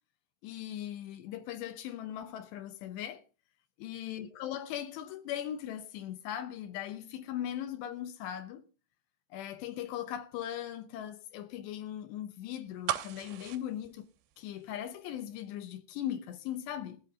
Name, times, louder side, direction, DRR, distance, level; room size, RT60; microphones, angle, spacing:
voice 1, 0.4-3.2 3.8-8.6 9.3-14.1 14.4-17.0, left 11 dB, 75° left, 2.7 m, -39 dB
sound 1, 12.9-14.9 15.2-15.3, right 12 dB, 75° right, 2.4 m, -37 dB
17.0 x 11.0 x 3.6 m
omnidirectional pair, 5.6 m